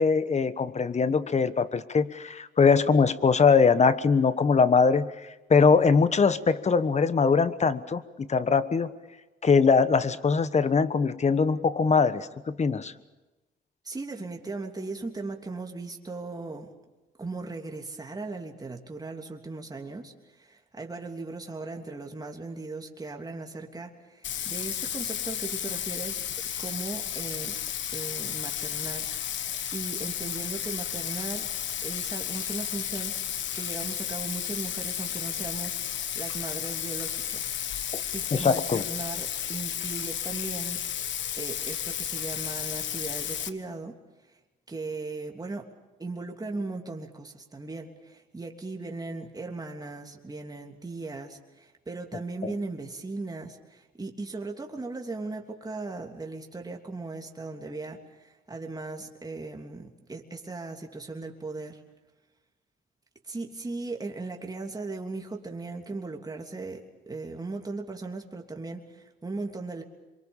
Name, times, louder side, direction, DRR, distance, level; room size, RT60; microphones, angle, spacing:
voice 1, 0.0-5.1 5.5-8.9 9.4-12.9 37.9-38.0 38.3-38.8 52.4-52.5, left 5 dB, 35° left, 14 dB, 1.3 m, -22 dB
voice 2, 13.8-16.7 17.2-26.2 26.6-27.6 27.9-31.5 31.8-35.8 36.1-37.5 38.1-40.8 41.3-44.0 44.7-45.7 46.0-61.8 63.2-69.8, right 3 dB, 20° right, 2 dB, 3.1 m, -38 dB
Bathtub (filling or washing), 24.2-43.5, left 10 dB, 70° left, 1.3 m, -33 dB
26.5 x 24.0 x 7.2 m, 1.1 s
cardioid pair, 90°, 20 cm